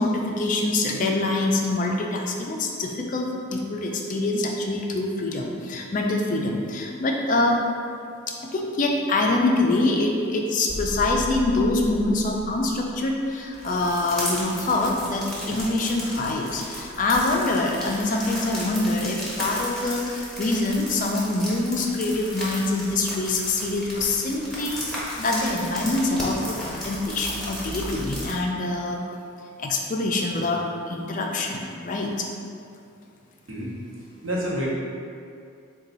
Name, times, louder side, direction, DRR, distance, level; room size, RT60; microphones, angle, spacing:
voice 1, 0.0-7.6 8.5-29.0 29.6-32.1, left 2 dB, 40° left, 0 dB, 0.3 m, -25 dB
sound 1, 10.7-13.4, equal, 45° right, 0.9 m, -35 dB
sound 2, 13.5-28.3, equal, ahead, 0.8 m, -34 dB
voice 2, 33.5-34.7, equal, 75° right, -5 dB, 0.9 m, -30 dB
4.0 x 2.2 x 3.9 m, 2.4 s
head